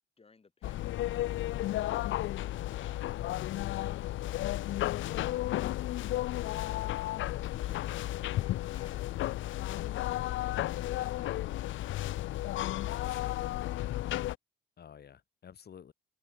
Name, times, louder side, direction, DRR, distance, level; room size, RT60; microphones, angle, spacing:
voice 1, 0.2-3.1 7.5-9.8, left 4 dB, 30° left, 5.8 m, -62 dB
sound 1, 0.6-14.4, left 15 dB, 75° left, 0.6 m, -33 dB
voice 2, 3.6-3.9 9.7-9.9 10.9-11.2 12.7-13.4 14.8-15.9, left 8 dB, 55° left, 4.5 m, -53 dB
open air
cardioid pair, 90°, 20 cm